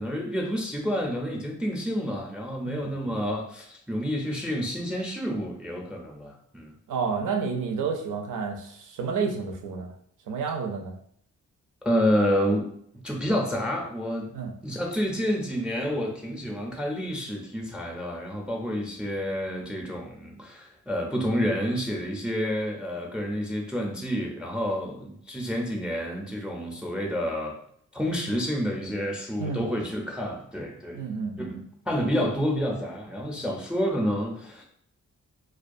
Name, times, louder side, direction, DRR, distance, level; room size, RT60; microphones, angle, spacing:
voice 1, 0.0-6.7 11.8-12.7 13.0-14.3 14.6-27.6 27.9-31.0 31.4-31.5 31.9-34.6, equal, 5° right, 0 dB, 0.4 m, -29 dB
voice 2, 6.9-9.9 10.3-10.9 14.3-14.5 29.4-29.6 30.9-31.6, right 5 dB, 80° right, 3 dB, 0.5 m, -30 dB
2.3 x 2.2 x 2.5 m, 0.66 s
cardioid pair, 75°, 30 cm